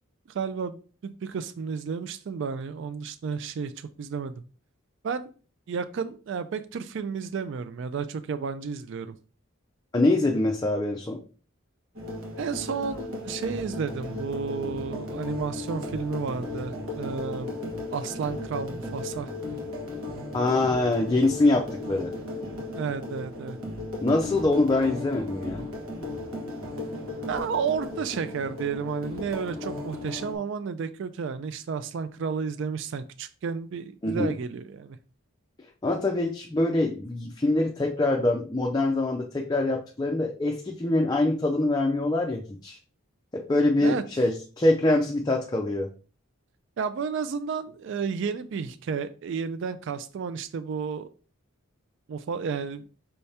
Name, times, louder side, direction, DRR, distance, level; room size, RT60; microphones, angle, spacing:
voice 1, 0.3-4.4 5.0-5.3 5.7-9.2 12.4-17.5 17.9-19.3 22.7-23.6 27.3-35.0 43.8-44.0 46.8-51.1 52.1-52.9, right 5 dB, 60° right, 12 dB, 0.3 m, -32 dB
voice 2, 9.9-11.2 20.3-22.1 24.0-25.7 34.0-34.4 35.6-42.8 43.3-45.9, left 2 dB, 20° left, 1 dB, 0.4 m, -24 dB
sound 1, 11.9-30.3, left 2 dB, 75° right, 1.5 m, -36 dB
5.6 x 3.3 x 2.8 m, 0.38 s
head